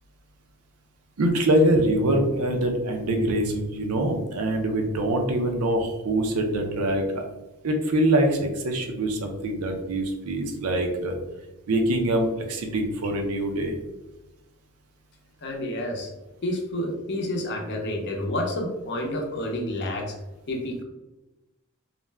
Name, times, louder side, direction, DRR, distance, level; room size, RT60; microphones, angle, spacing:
voice 1, 1.2-7.2 7.6-11.1 11.7-13.8, right 1 dB, 85° right, 3 dB, 0.5 m, -24 dB
voice 2, 15.4-16.1 16.4-20.1 20.5-20.8, left 1 dB, 50° left, 1 dB, 0.6 m, -29 dB
2.4 x 2.1 x 3.2 m, 1.0 s
head